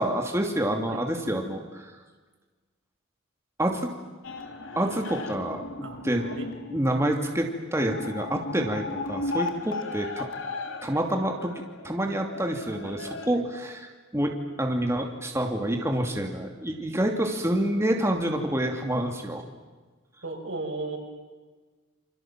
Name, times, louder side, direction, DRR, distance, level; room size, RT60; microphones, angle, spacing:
voice 1, 0.0-1.9 3.6-3.9 4.8-5.6 6.0-6.3 6.7-10.3 10.8-11.5 11.8-19.4, right 1 dB, 15° right, 2 dB, 2.7 m, -27 dB
sound 1, 4.2-13.3, left 2 dB, 70° left, 3.3 m, -36 dB
voice 2, 20.2-21.0, right 3 dB, 70° right, 3 dB, 6.5 m, -35 dB
29.0 x 27.5 x 7.5 m, 1.3 s
head